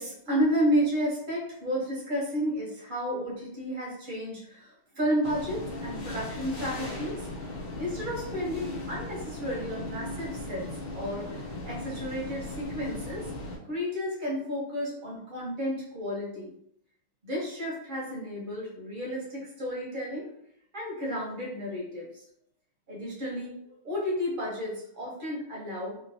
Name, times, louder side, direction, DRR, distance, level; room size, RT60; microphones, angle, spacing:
voice 1, 0.0-7.4 7.8-10.7 10.9-13.3 13.6-16.5 17.2-20.3 20.7-22.2 22.9-26.0, equal, 45° right, -4 dB, 0.6 m, -32 dB
sound 1, 5.2-13.6, left 1 dB, 65° left, 1.6 m, -37 dB
3.8 x 2.4 x 2.7 m, 0.71 s
omnidirectional pair, 2.3 m